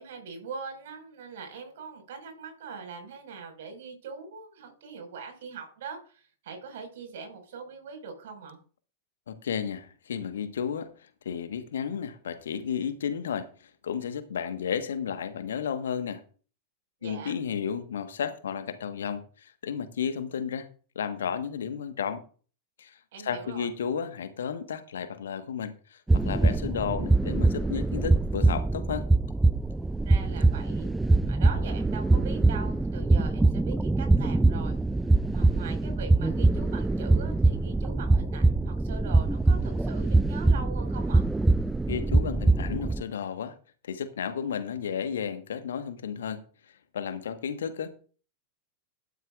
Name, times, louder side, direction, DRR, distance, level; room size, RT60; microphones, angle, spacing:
voice 1, 0.0-8.6 17.0-17.3 23.1-23.7 30.1-30.9 31.2-34.8 35.3-41.3, right 5 dB, 55° right, 5.2 m, -42 dB
voice 2, 9.3-10.9 11.2-16.2 17.0-20.7 20.9-22.2 22.8-29.0 41.9-43.5 43.8-46.4 46.9-47.9, left 7 dB, 65° left, 1.4 m, -33 dB
sound 1, 26.1-43.0, right 2 dB, 5° right, 0.4 m, -23 dB
12.5 x 12.0 x 2.5 m
figure-of-eight pair, 90°, 0 cm